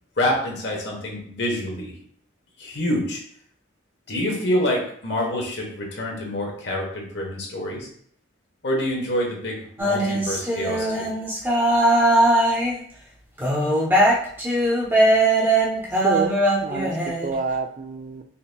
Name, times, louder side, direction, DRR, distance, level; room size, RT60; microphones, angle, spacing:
voice 1, 0.2-1.9 2.6-3.2 4.1-7.9 8.6-11.1, left 1 dB, 70° left, -1 dB, 1.1 m, -26 dB
sound 1, 9.8-12.8 13.4-17.3, right 1 dB, 10° right, 0.7 m, -20 dB
voice 2, 16.6-18.2, right 3 dB, 40° right, 6 dB, 0.4 m, -28 dB
5.5 x 2.7 x 2.2 m, 0.63 s
head